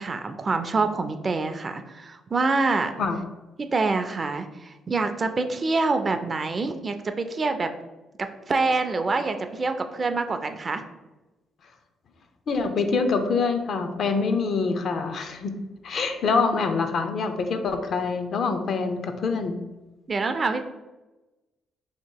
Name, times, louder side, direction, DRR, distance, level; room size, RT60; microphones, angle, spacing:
voice 1, 0.0-2.9 3.6-7.7 8.5-10.8 20.1-20.7, right 3 dB, 35° right, 8 dB, 0.4 m, -26 dB
voice 2, 12.5-15.6 15.8-19.5, left 4 dB, 60° left, 7 dB, 0.5 m, -25 dB
2.9 x 2.9 x 4.5 m, 1.1 s
cardioid pair, 90°, 0 cm